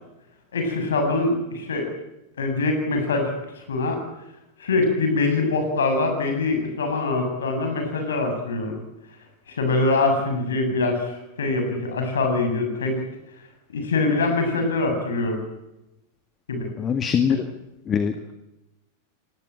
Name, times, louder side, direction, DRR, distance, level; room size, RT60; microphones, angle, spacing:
voice 1, 0.5-1.9 2.4-4.0 4.6-8.8 9.5-13.1 13.7-15.4 16.5-16.7 17.3-17.4, left 3 dB, 65° left, 5 dB, 7.5 m, -24 dB
voice 2, 16.8-17.4 17.9-18.1, left 7 dB, 25° left, 9 dB, 1.9 m, -21 dB
25.5 x 20.5 x 9.0 m, 0.93 s
figure-of-eight pair, 90°, 0 cm